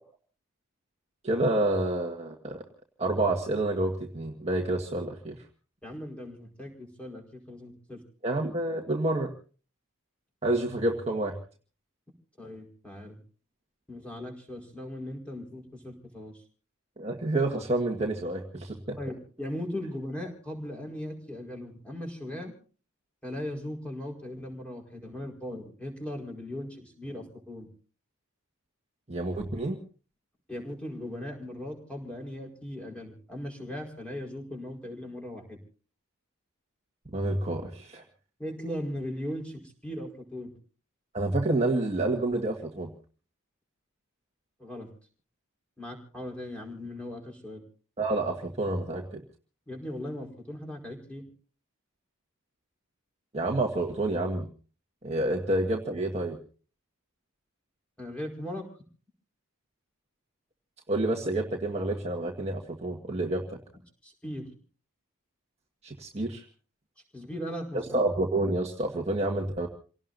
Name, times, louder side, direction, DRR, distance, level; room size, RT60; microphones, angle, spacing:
voice 1, 1.2-2.6 3.0-5.3 8.2-9.3 10.4-11.3 17.0-19.0 29.1-29.8 37.1-38.0 41.1-42.9 48.0-49.2 53.3-54.5 55.0-56.4 60.9-63.6 65.8-66.4 67.9-69.7, right 2 dB, 30° right, 1 dB, 1.7 m, -28 dB
voice 2, 5.8-8.0 12.4-13.2 13.9-16.4 19.0-22.5 23.2-27.7 30.5-35.6 38.4-40.6 44.6-44.9 45.8-47.6 49.7-51.2 58.0-58.6 64.0-64.5 67.1-67.8, left 1 dB, 5° left, 0 dB, 5.0 m, -38 dB
29.0 x 18.0 x 2.7 m, 0.39 s
head